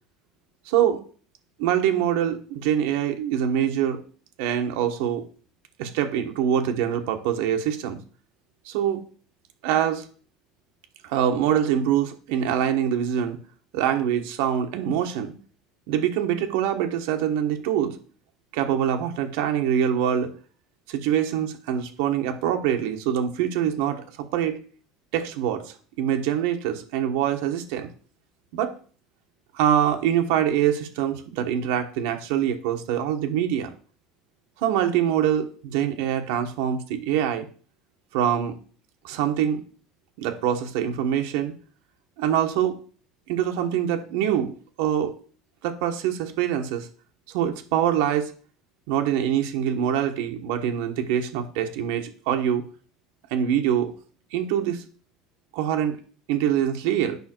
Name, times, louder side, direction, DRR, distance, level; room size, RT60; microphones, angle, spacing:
voice 1, 0.7-1.0 1.6-4.0 4.4-5.2 5.8-8.0 8.7-9.0 9.6-10.1 11.0-13.4 13.7-15.3 15.9-18.0 18.5-20.3 20.9-24.6 25.1-27.9 28.5-28.7 29.5-33.7 34.6-37.5 38.1-38.6 39.0-39.6 40.2-41.5 42.2-42.8 43.3-45.2 45.6-46.9 47.3-48.3 48.9-52.6 53.3-53.9 54.3-54.8 55.5-56.0 56.3-57.2, right 9 dB, 75° right, 5 dB, 1.2 m, -24 dB
8.3 x 5.7 x 4.5 m, 0.41 s
cardioid pair, 150°, 0 cm